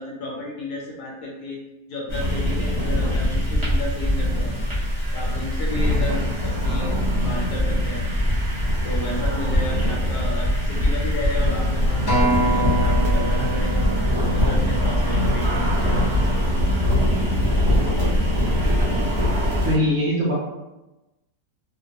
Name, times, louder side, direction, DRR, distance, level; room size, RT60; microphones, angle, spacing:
voice 1, 0.0-1.6 1.9-4.5 5.1-8.1 8.8-13.9 14.2-16.1, left 1 dB, 70° left, -2 dB, 1.0 m, -32 dB
sound 1, 2.1-19.7, left 1 dB, 30° right, 0.5 m, -22 dB
Acoustic guitar, 12.1-16.5 17.1-17.3, right 2 dB, 90° left, 0.3 m, -27 dB
voice 2, 19.6-20.3, equal, 65° right, -6 dB, 1.0 m, -21 dB
2.9 x 2.1 x 2.7 m, 1.0 s
omnidirectional pair, 1.9 m